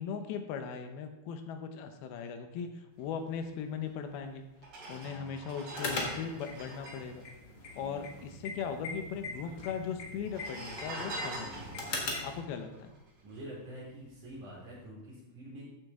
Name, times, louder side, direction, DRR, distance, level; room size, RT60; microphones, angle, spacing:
voice 1, 0.0-4.5 4.9-7.3 7.8-11.8 12.2-12.9, left 6 dB, 90° left, 6 dB, 2.9 m, -39 dB
sound 1, 3.9-4.0 4.6-8.3 8.5-8.6 8.8-9.5 10.2-13.6 14.1-14.3, right 2 dB, 75° right, 6.1 m, -44 dB
voice 2, 4.9-5.4 7.7-8.2 11.4-11.8 13.2-15.6, right 1 dB, 55° right, -7 dB, 5.8 m, -47 dB
sound 2, 5.7-12.4, left 2 dB, 50° left, 1.3 m, -40 dB
13.5 x 6.7 x 3.6 m, 0.93 s
omnidirectional pair, 4.3 m